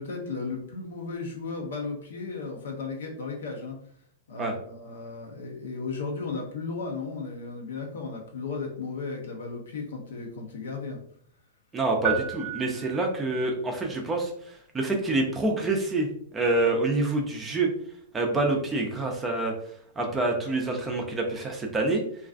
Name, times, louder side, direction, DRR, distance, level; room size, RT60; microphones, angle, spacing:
voice 1, 0.0-3.8 4.3-11.0, left 4 dB, 80° left, 1 dB, 0.6 m, -35 dB
voice 2, 11.7-17.7 18.1-19.5 20.0-22.0, right 2 dB, 15° right, 1 dB, 0.4 m, -27 dB
sound 1, 12.0-13.5, right 10 dB, 70° right, 0.6 m, -33 dB
2.4 x 2.3 x 2.4 m, 0.64 s
hypercardioid pair, 140°, 0 cm